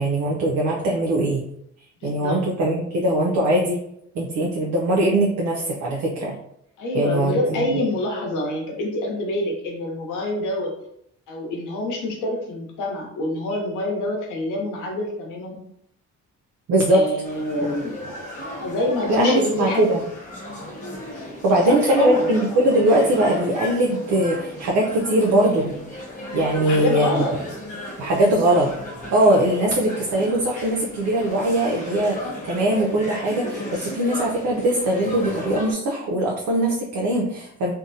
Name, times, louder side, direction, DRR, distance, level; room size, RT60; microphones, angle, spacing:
voice 1, 0.0-1.4 2.0-3.8 4.2-6.4 6.9-7.8 16.7-17.0 19.1-20.0 21.4-25.8 26.3-27.2 28.0-28.7 29.1-37.7, right 1 dB, 70° right, -1 dB, 0.5 m, -21 dB
voice 2, 2.0-2.4 6.8-10.7 11.3-15.6 16.9-18.0 18.6-19.9 21.5-22.3 26.6-27.5, left 1 dB, 85° left, 0 dB, 0.8 m, -26 dB
sound 1, 17.2-35.7, left 1 dB, 25° left, 1.0 m, -35 dB
2.6 x 2.0 x 2.6 m, 0.74 s
cardioid pair, 90°, 30 cm